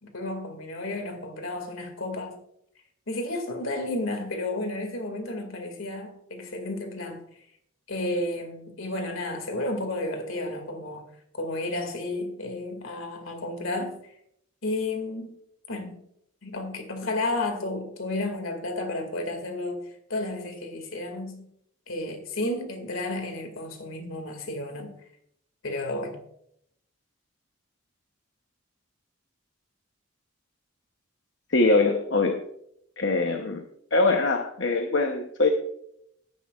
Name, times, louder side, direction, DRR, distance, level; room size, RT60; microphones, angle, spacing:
voice 1, 0.0-2.4 3.1-7.2 7.9-11.1 11.3-14.0 14.6-15.3 15.7-16.0 16.4-21.5 21.9-24.9 25.6-26.2, left 2 dB, 75° left, 2.2 m, -32 dB
voice 2, 31.5-32.4 33.0-33.6 33.9-35.5, left 3 dB, 60° left, 0.9 m, -23 dB
17.0 x 10.5 x 2.4 m
head